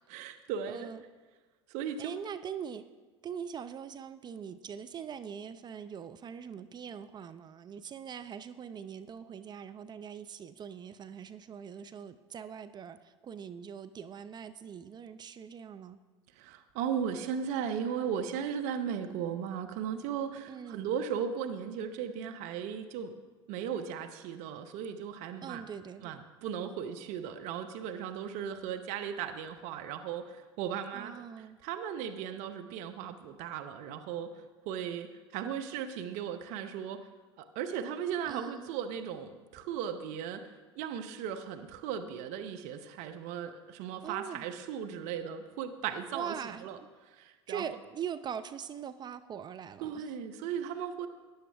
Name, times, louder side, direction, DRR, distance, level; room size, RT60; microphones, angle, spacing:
voice 1, 0.1-0.9 1.7-2.2 16.4-23.1 23.5-25.6 26.0-34.3 34.7-37.0 37.4-46.3 46.6-46.8 47.1-47.6 49.8-51.1, right 8 dB, 55° right, 8 dB, 0.9 m, -37 dB
voice 2, 0.7-1.0 2.0-2.8 3.2-16.0 20.5-20.9 25.4-26.2 30.9-31.6 38.3-38.7 44.0-44.4 46.1-46.9 47.5-50.1, right 8 dB, 30° right, 11 dB, 0.5 m, -42 dB
14.5 x 10.5 x 3.4 m, 1.3 s
hypercardioid pair, 75°, 14 cm